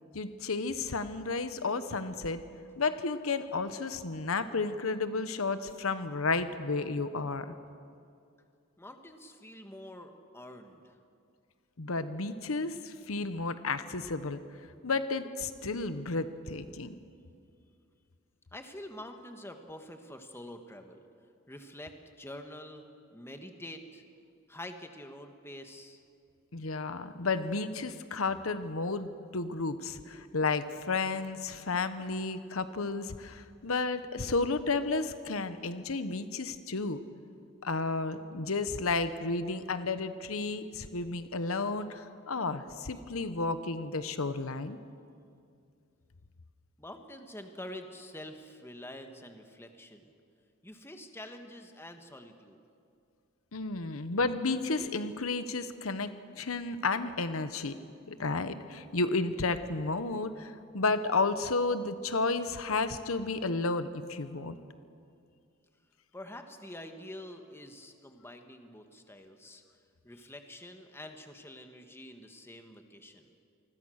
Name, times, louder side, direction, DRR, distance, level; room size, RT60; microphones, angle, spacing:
voice 1, 0.1-2.4 2.8-7.5 11.8-14.4 14.8-16.9 26.5-37.0 37.6-44.8 53.5-57.7 58.1-64.6, left 3 dB, 85° left, 11 dB, 1.1 m, -32 dB
voice 2, 8.8-10.9 18.5-21.1 21.5-22.9 23.1-24.0 24.5-26.0 46.8-50.1 50.6-52.6 66.1-69.6 70.0-73.3, left 1 dB, 10° left, 6 dB, 1.5 m, -46 dB
27.5 x 20.5 x 6.5 m, 2.4 s
head